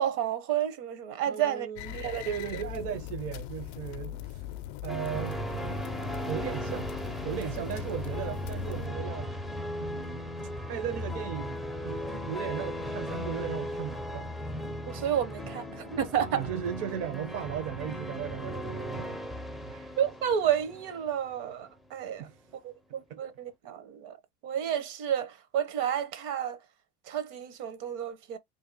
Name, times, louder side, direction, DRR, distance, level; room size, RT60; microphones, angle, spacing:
voice 1, 0.0-1.7 1.9-2.6 7.2-7.6 14.9-16.4 20.0-22.3 22.6-24.2 24.4-26.6 27.1-28.4, right 9 dB, 65° right, 1.0 m, -31 dB
voice 2, 1.3-2.0 2.2-4.4 4.8-5.4 6.3-6.9 7.2-9.3 9.8-14.3 16.3-19.2 19.6-19.9 22.2-22.4 23.1-23.2, right 9 dB, 50° right, 0.6 m, -37 dB
sound 1, 1.8-8.9, left 14 dB, 65° left, 0.4 m, -40 dB
sound 2, 4.9-21.7, equal, ahead, 0.4 m, -37 dB
2.8 x 2.7 x 3.9 m
supercardioid pair, 135°, 32 cm